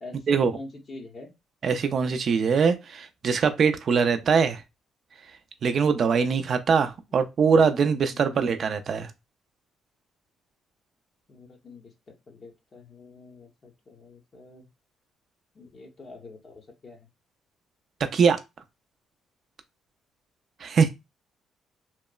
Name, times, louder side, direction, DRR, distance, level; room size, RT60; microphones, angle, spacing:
voice 1, 0.0-1.3 8.1-8.5 11.3-11.9 12.3-14.7 15.6-17.0, left 3 dB, 40° left, 0.8 m, -45 dB
voice 2, 1.6-4.6 5.6-9.1 18.1-18.4 20.6-20.9, right 5 dB, 50° right, 0.3 m, -22 dB
2.9 x 2.0 x 2.3 m
cardioid pair, 95°, 0 cm